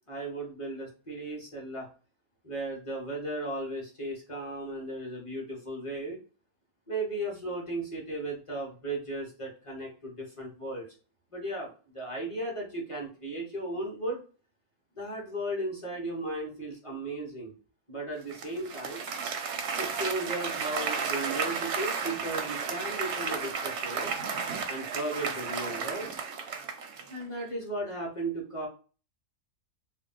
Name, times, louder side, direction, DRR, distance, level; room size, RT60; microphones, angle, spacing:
voice 1, 0.1-1.9 2.4-6.2 6.9-10.8 11.3-14.2 15.0-17.5 17.9-19.0 19.8-24.1 24.7-26.1 27.1-28.7, right 1 dB, 25° left, -2 dB, 0.7 m, -36 dB
Applause, 18.3-27.2, right 5 dB, 65° right, 0.7 m, -33 dB
2.6 x 2.1 x 3.7 m, 0.37 s
omnidirectional pair, 1.6 m